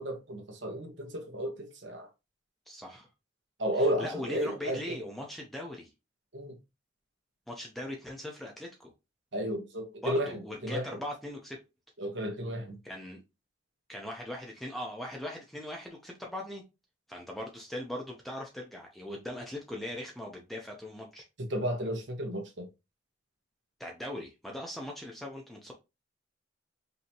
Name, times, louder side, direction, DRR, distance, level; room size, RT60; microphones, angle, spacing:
voice 1, 0.0-2.1 3.6-4.9 6.3-6.6 9.3-10.9 12.0-12.8 21.4-22.7, equal, 70° right, 1.3 m, -33 dB
voice 2, 2.7-3.1 3.8-5.9 7.5-8.9 10.0-11.6 12.8-13.2 13.9-16.6 17.1-21.3 23.8-25.7, left 1 dB, ahead, 0.6 m, -40 dB
5.4 x 2.8 x 2.9 m
head